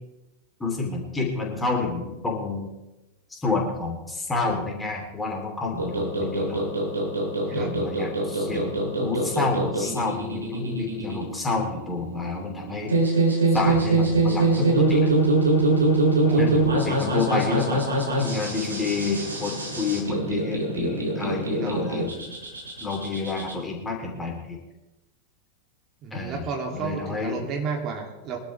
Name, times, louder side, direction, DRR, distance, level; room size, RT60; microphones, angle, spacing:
voice 1, 0.6-2.7 3.3-6.6 7.5-12.9 13.5-15.1 16.3-17.8 18.2-22.3 22.8-24.6 26.1-27.5, left 3 dB, 10° left, 0 dB, 3.4 m, -29 dB
sound 1, 5.8-23.5, right 2 dB, 75° right, 3.4 m, -24 dB
voice 2, 16.2-16.6 21.6-21.7 26.0-28.4, right 5 dB, 35° right, 1 dB, 2.9 m, -32 dB
23.5 x 12.5 x 3.4 m, 1.0 s
figure-of-eight pair, 90°, 0 cm